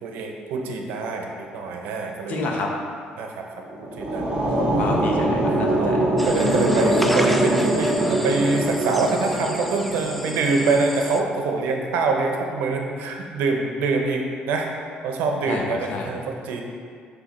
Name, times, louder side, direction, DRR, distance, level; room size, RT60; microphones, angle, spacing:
voice 1, 0.0-2.4 3.2-3.4 4.0-4.3 4.6-4.8 5.7-14.7 15.0-16.6, right 3 dB, 85° right, 2 dB, 0.8 m, -25 dB
voice 2, 2.3-2.7 4.8-6.0 15.5-15.6 15.9-16.1, left 3 dB, 60° left, 0 dB, 0.9 m, -29 dB
sound 1, 3.6-10.8, right 1 dB, 35° right, 1.2 m, -23 dB
sound 2, 6.2-11.2, equal, 5° left, 0.3 m, -33 dB
7.1 x 3.4 x 4.2 m, 2.2 s
cardioid pair, 115°, 3 cm